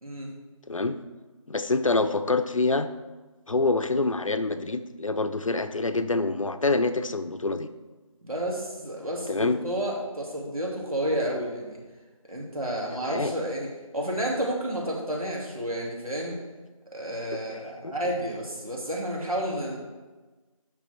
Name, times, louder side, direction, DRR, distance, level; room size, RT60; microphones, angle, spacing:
voice 1, 0.7-1.0 1.5-2.9 3.5-7.7 9.3-9.6 13.1-13.3 17.8-18.0, left 3 dB, 65° left, 9 dB, 0.6 m, -26 dB
voice 2, 8.2-11.8 12.3-13.7 13.9-16.4 16.9-19.8, right 1 dB, 85° right, -2 dB, 2.8 m, -30 dB
8.7 x 6.1 x 4.4 m, 1.2 s
figure-of-eight pair, 170°, 18 cm